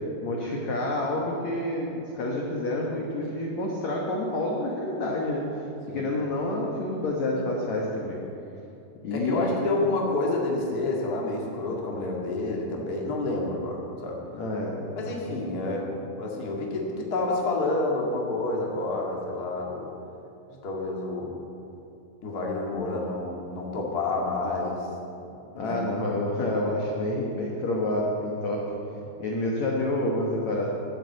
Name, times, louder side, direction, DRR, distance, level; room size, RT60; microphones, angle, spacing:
voice 1, 0.2-5.7 5.9-8.2 9.0-9.8 14.2-15.0 15.5-15.6 25.5-28.6 29.2-30.7, left 1 dB, 65° left, -2 dB, 1.8 m, -28 dB
voice 2, 9.1-14.2 15.0-19.9 20.6-21.4 22.2-24.9 25.6-25.8, left 2 dB, 40° left, -2 dB, 1.3 m, -29 dB
11.5 x 10.0 x 8.0 m, 2.8 s
omnidirectional pair, 5.0 m